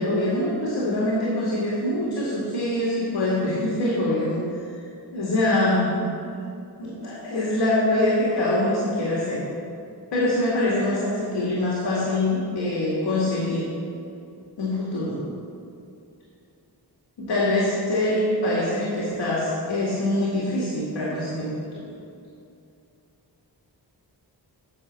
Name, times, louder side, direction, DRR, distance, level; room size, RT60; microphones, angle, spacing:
voice 1, 0.0-4.4 5.1-6.3 6.8-9.4 10.1-13.7 14.6-15.2 17.2-21.8, left 1 dB, 90° left, -6 dB, 2.2 m, -24 dB
9.7 x 5.7 x 7.3 m, 2.6 s
wide cardioid pair, 100°, 40 cm